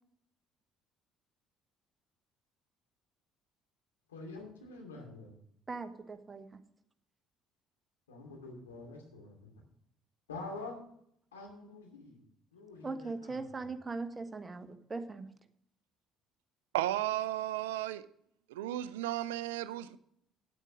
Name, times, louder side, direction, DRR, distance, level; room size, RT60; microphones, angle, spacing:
voice 1, 4.1-5.3 8.1-9.5 10.3-10.8 11.3-12.2 12.5-13.7, left 3 dB, 85° left, 0 dB, 2.5 m, -46 dB
voice 2, 5.7-6.6 12.8-15.3, right 3 dB, 25° right, 8 dB, 1.3 m, -40 dB
voice 3, 16.7-18.0 18.5-20.0, right 14 dB, 80° right, 15 dB, 0.5 m, -34 dB
9.5 x 8.9 x 6.3 m, 0.72 s
hypercardioid pair, 55°, 0 cm